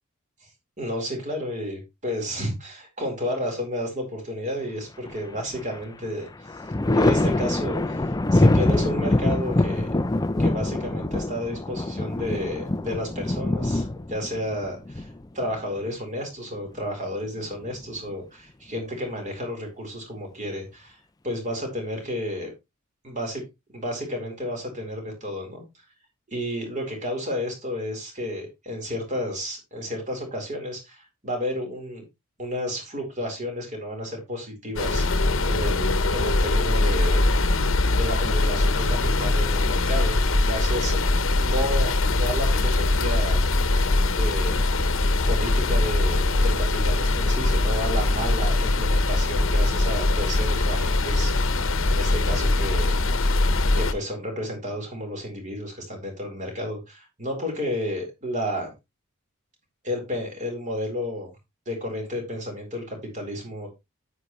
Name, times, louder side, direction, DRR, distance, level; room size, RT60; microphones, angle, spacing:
voice 1, 0.8-6.3 6.9-8.0 8.3-9.9 10.4-15.1 15.3-21.0 21.2-22.5 23.0-23.4 23.7-25.6 26.3-32.0 32.4-37.2 37.9-40.2 40.4-41.0 41.4-43.4 44.1-44.7 45.3-53.1 53.7-58.7 59.8-61.3 61.7-63.7, equal, 35° right, 2 dB, 4.2 m, -32 dB
Thunder, 5.1-5.8 6.2-15.8 17.3-18.1, left 2 dB, 20° left, 0.5 m, -24 dB
sound 1, 34.8-53.9, left 2 dB, 70° left, 1.1 m, -22 dB
9.6 x 8.5 x 3.1 m, 0.23 s
head